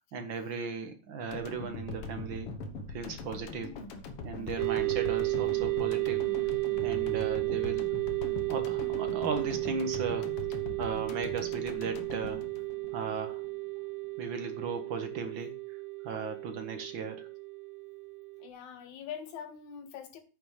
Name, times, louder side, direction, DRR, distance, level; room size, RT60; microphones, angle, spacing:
voice 1, 0.1-2.5 2.9-3.7 4.2-6.2 6.8-7.8 8.5-10.3 10.8-12.4 12.9-13.4 14.2-15.5 16.0-17.3, right 5 dB, 50° right, 7 dB, 1.7 m, -36 dB
sound 1, 1.3-13.5, left 3 dB, 60° left, 2.0 m, -42 dB
sound 2, 4.6-18.5, right 26 dB, 75° right, 1.8 m, -33 dB
voice 2, 18.4-20.2, left 8 dB, 75° left, 7 dB, 2.8 m, -43 dB
9.4 x 6.1 x 6.6 m, 0.35 s
omnidirectional pair, 3.4 m